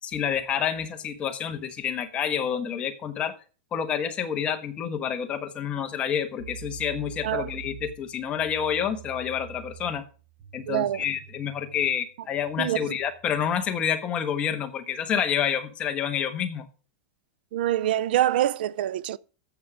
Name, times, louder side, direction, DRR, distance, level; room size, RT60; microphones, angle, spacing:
voice 1, 0.0-3.3 3.7-10.0 10.5-16.7, left 8 dB, 20° left, 1.2 m, -28 dB
sound 1, 6.4-13.9, right 7 dB, 40° right, 3.3 m, -46 dB
voice 2, 10.7-11.0 12.6-13.0 17.5-19.2, right 13 dB, 75° right, 0.5 m, -25 dB
14.0 x 7.3 x 5.0 m
supercardioid pair, 160°, 5 cm